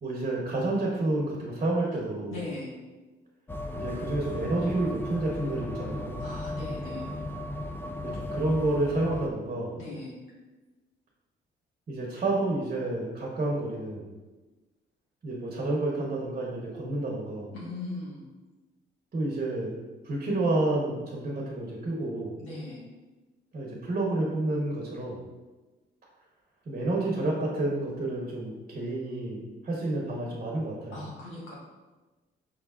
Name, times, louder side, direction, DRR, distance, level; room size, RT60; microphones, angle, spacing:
voice 1, 0.0-2.3 3.8-6.2 8.0-9.8 11.9-14.1 15.2-17.5 19.1-19.7 20.0-22.3 23.5-25.2 26.7-31.0, right 2 dB, 40° right, -2 dB, 0.9 m, -29 dB
voice 2, 2.3-2.7 6.2-7.1 9.7-10.1 17.5-18.2 22.4-22.8 30.9-31.5, left 2 dB, 85° left, -5 dB, 1.4 m, -38 dB
sound 1, 3.5-9.3, left 2 dB, 10° left, 0.3 m, -36 dB
5.1 x 3.2 x 2.4 m, 1.2 s
cardioid pair, 90°, 20 cm